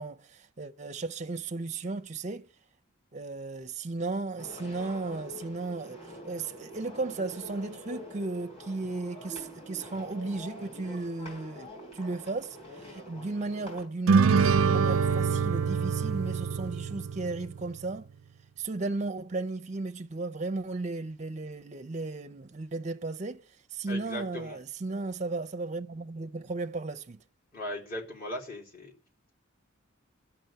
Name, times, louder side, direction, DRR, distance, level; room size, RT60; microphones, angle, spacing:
voice 1, 0.0-2.5 3.1-18.1 18.6-23.4 23.7-27.2, right 3 dB, 35° right, 0.5 m, -35 dB
sound 1, 4.4-13.8, left 1 dB, 30° left, 5.0 m, -45 dB
sound 2, 14.1-17.7, right 5 dB, 90° right, 0.5 m, -25 dB
voice 2, 23.9-24.6 27.5-28.9, equal, 45° left, 4.1 m, -38 dB
12.0 x 6.1 x 9.0 m
head